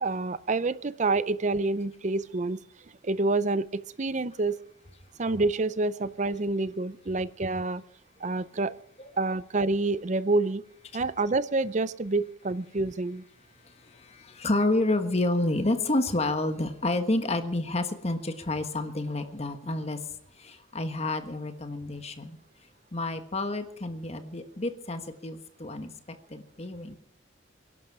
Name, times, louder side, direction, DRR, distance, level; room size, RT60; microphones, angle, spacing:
voice 1, 0.0-2.6 3.0-4.6 5.2-7.8 8.2-8.7 9.2-10.6 10.9-13.2, right 3 dB, 35° right, 17 dB, 0.5 m, -27 dB
voice 2, 13.8-20.0 20.4-22.4 22.9-27.0, left 2 dB, 35° left, 8 dB, 1.4 m, -29 dB
23.5 x 11.5 x 4.8 m, 0.73 s
head